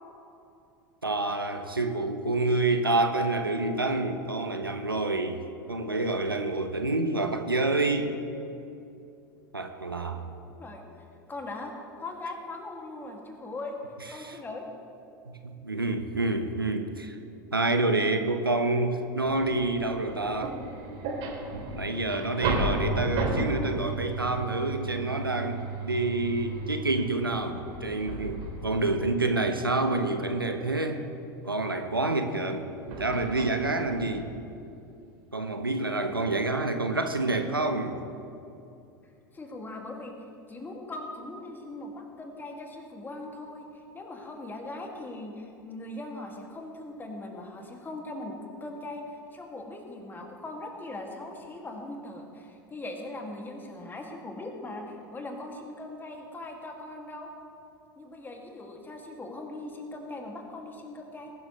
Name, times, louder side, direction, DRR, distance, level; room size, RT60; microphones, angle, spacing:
voice 1, 1.0-8.1 9.5-10.3 14.2-14.4 15.3-17.2 17.5-20.6 21.7-31.0 31.4-34.3 35.3-38.0, right 2 dB, 90° right, 6 dB, 0.9 m, -28 dB
voice 2, 10.4-10.8 11.3-11.7 12.0-13.8 14.1-14.7 36.2-36.6 39.3-40.2 40.5-57.3 58.0-61.3, left 2 dB, 15° left, 1 dB, 2.3 m, -40 dB
sound 1, 19.2-29.4 32.9-34.5, right 2 dB, 50° right, 3.2 m, -34 dB
21.0 x 12.0 x 3.2 m, 2.7 s
figure-of-eight pair, 80°, 12 cm